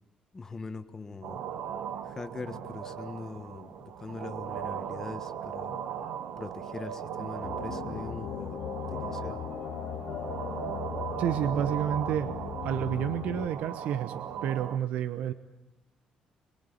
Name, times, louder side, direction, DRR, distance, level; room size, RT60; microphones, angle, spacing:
voice 1, 0.3-1.4 2.0-5.8 6.3-9.4, left 4 dB, 20° left, 8 dB, 1.5 m, -42 dB
sound 1, 1.2-14.8, right 9 dB, 60° right, 1.1 m, -38 dB
sound 2, 7.4-13.5, left 10 dB, 75° left, 2.4 m, -38 dB
voice 2, 11.2-12.3 12.6-15.3, right 10 dB, 80° right, 12 dB, 0.9 m, -30 dB
26.5 x 22.5 x 8.6 m, 0.92 s
cardioid pair, 155°, 2 cm